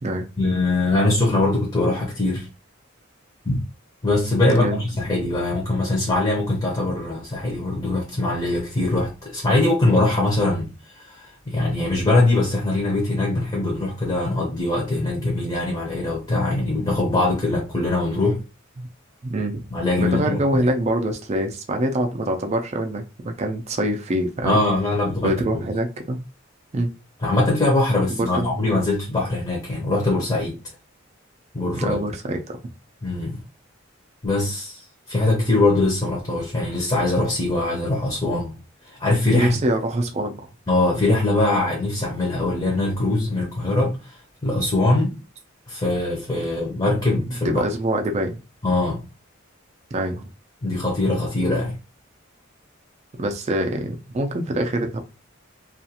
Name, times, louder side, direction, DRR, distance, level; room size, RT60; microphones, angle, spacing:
voice 1, 0.4-2.5 3.4-3.6 4.0-18.4 19.7-20.4 24.4-25.6 27.2-30.5 31.5-32.0 33.0-33.4 34.2-38.5 38.8-39.5 40.7-45.2 45.7-47.6 48.6-49.0 50.6-51.7, left 2 dB, 25° left, 0.7 m, -22 dB
voice 2, 4.5-4.8 18.8-18.9 19.2-19.6 20.0-24.6 25.2-26.2 26.7-26.9 28.1-28.6 31.8-32.6 39.3-40.5 47.2-48.4 49.9-50.3 53.2-55.0, right 1 dB, 35° right, 0.4 m, -25 dB
2.4 x 2.3 x 2.8 m
head